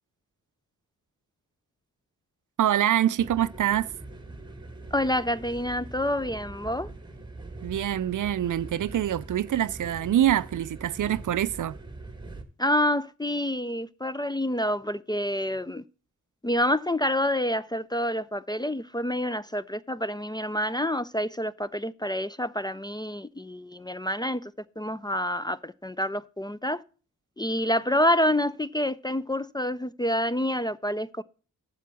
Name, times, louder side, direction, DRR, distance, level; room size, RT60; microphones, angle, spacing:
voice 1, 2.6-3.9 7.6-11.8, right 11 dB, 65° right, 0.5 m, -25 dB
sound 1, 3.2-12.4, right 2 dB, 15° right, 1.7 m, -42 dB
voice 2, 4.9-6.9 12.6-15.8 16.4-26.8 27.4-31.2, left 1 dB, 15° left, 0.4 m, -28 dB
7.5 x 7.0 x 6.9 m
cardioid pair, 60°, 34 cm